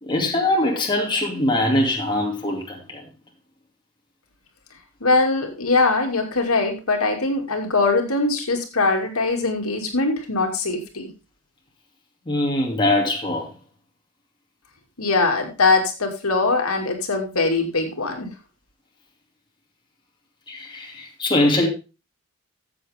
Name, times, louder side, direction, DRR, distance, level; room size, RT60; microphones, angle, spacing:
voice 1, 0.0-3.0 12.3-13.5 20.5-21.7, left 1 dB, 20° left, 2.4 m, -22 dB
voice 2, 5.0-11.1 15.0-18.3, left 3 dB, 75° left, 2.5 m, -21 dB
13.5 x 7.7 x 3.5 m
head